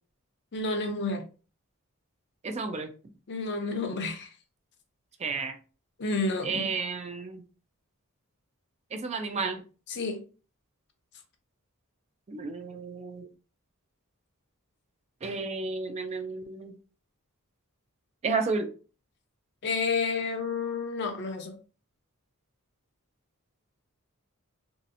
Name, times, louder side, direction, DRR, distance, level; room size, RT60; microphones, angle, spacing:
voice 1, 0.5-1.2 3.3-4.3 6.0-6.7 9.9-10.2 19.6-21.6, left 3 dB, 50° left, 0.6 m, -30 dB
voice 2, 2.4-2.9 5.2-5.6 6.4-7.4 8.9-9.6 12.3-13.2 15.2-16.7 18.2-18.7, right 4 dB, 30° right, 0.4 m, -32 dB
3.1 x 2.7 x 2.6 m
head